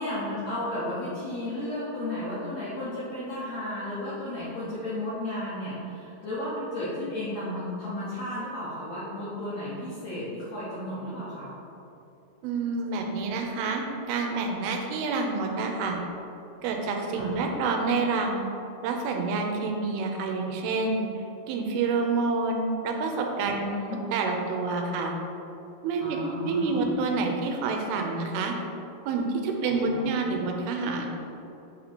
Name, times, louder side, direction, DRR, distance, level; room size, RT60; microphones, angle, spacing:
voice 1, 0.0-11.5 17.1-17.4 23.5-24.0 26.0-26.9 29.6-30.1, left 1 dB, 75° left, -9 dB, 1.6 m, -33 dB
voice 2, 12.4-16.0 16.6-18.4 18.8-23.8 24.1-25.1 25.8-26.2 26.4-28.6 29.1-31.1, right 4 dB, 85° right, 2 dB, 2.5 m, -28 dB
8.1 x 2.9 x 4.2 m, 2.8 s
omnidirectional pair, 4.3 m